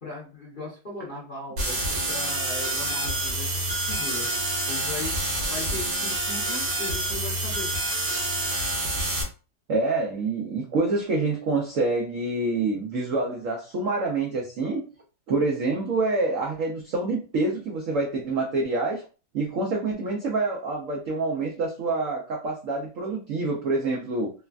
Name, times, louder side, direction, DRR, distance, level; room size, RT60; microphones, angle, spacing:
voice 1, 0.0-3.6 3.9-4.3 4.7-5.2 5.4-7.7, left 3 dB, 45° left, -6 dB, 0.7 m, -38 dB
sound 1, 1.6-9.2, right 1 dB, 60° right, 1.2 m, -27 dB
voice 2, 9.7-14.8 15.3-19.1 19.3-24.3, right 3 dB, 80° right, 0 dB, 0.7 m, -26 dB
3.2 x 2.1 x 2.4 m, 0.35 s
omnidirectional pair, 2.0 m